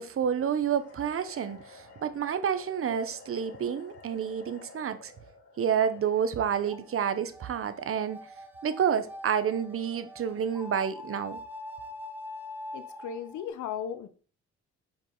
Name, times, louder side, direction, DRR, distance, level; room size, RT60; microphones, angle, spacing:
voice 1, 0.0-5.1 5.6-8.2 8.6-11.4, right 8 dB, 45° right, 1.0 m, -29 dB
sound 1, 0.7-7.0, left 3 dB, 50° left, 2.3 m, -51 dB
sound 2, 5.9-13.5, left 1 dB, 5° right, 1.2 m, -44 dB
voice 2, 12.7-14.1, left 8 dB, 70° left, 1.0 m, -36 dB
7.4 x 5.2 x 3.9 m
cardioid pair, 90°, 30 cm